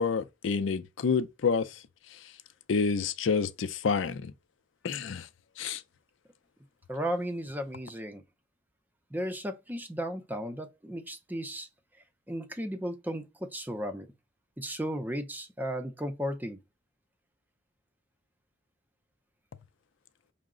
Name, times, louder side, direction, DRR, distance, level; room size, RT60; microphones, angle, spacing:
voice 1, 0.0-1.8 2.1-2.2 2.7-4.3 4.8-5.3 5.6-5.8, left 5 dB, 80° left, 0.4 m, -28 dB
voice 2, 6.9-8.2 9.1-11.7 12.3-14.1 14.6-16.6, equal, 10° right, 0.5 m, -35 dB
5.6 x 2.1 x 3.6 m
head